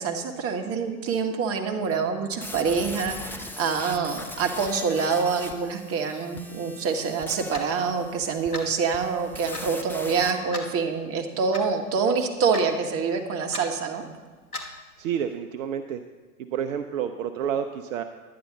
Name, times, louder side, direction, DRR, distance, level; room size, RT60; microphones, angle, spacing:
voice 1, 0.0-14.0, right 5 dB, 30° right, 4 dB, 1.4 m, -26 dB
sound 1, 2.3-10.3, left 2 dB, 5° left, 0.7 m, -40 dB
Clock, 7.5-7.7 8.5-8.7 9.5-9.7 10.5-10.7 11.5-11.7 12.5-12.8 13.5-13.7 14.5-14.7, left 2 dB, 90° left, 1.3 m, -35 dB
voice 2, 15.0-16.0 16.4-18.0, right 8 dB, 60° right, 7 dB, 0.7 m, -29 dB
11.5 x 9.7 x 4.0 m, 1.4 s
figure-of-eight pair, 95°, 43 cm